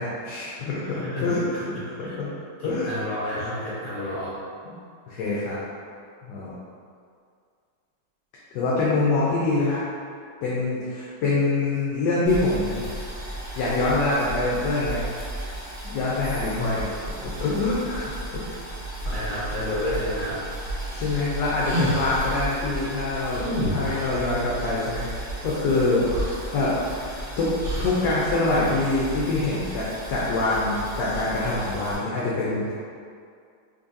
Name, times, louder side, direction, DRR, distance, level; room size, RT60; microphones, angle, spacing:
voice 1, 0.0-1.6 2.0-2.4 2.6-2.9 4.6-4.8 5.1-5.6 6.2-6.6 8.5-9.8 10.4-12.9 13.5-15.1 15.8-16.9 17.2-18.7 19.3-19.5 20.9-26.7 27.4-27.5 27.8-32.7, left 2 dB, 70° left, -7 dB, 1.1 m, -25 dB
voice 2, 0.8-2.2 2.6-4.4 16.5-16.8 19.0-20.4, left 1 dB, 40° left, -10 dB, 1.6 m, -30 dB
Boiling, 12.3-31.9, right 1 dB, 25° left, 1.0 m, -35 dB
sound 1, 20.8-22.5 23.3-24.2 25.7-25.8 26.1-27.1 27.6-28.1, equal, 65° right, 0.9 m, -29 dB
3.8 x 3.0 x 2.6 m, 2.3 s
omnidirectional pair, 2.0 m